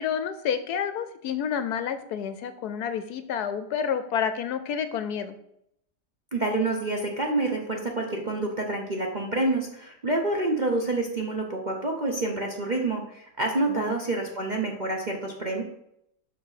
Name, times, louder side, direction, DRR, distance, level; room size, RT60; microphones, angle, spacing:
voice 1, 0.0-5.4 13.7-14.0, left 8 dB, 70° left, 11 dB, 1.0 m, -29 dB
voice 2, 6.3-15.6, right 2 dB, 40° right, -1 dB, 0.7 m, -28 dB
5.9 x 5.7 x 5.7 m, 0.76 s
omnidirectional pair, 1.9 m